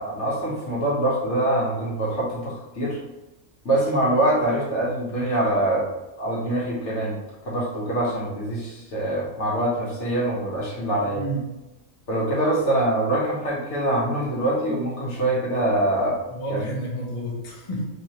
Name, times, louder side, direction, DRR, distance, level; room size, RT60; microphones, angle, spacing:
voice 1, 0.0-3.0 3.6-5.9 6.2-7.2 7.4-11.2 12.1-16.2 16.5-16.7, right 1 dB, 60° left, -5 dB, 1.3 m, -24 dB
voice 2, 11.0-11.4 16.3-17.9, right 1 dB, 35° left, -4 dB, 0.8 m, -30 dB
3.4 x 3.2 x 2.8 m, 1.0 s
omnidirectional pair, 1.4 m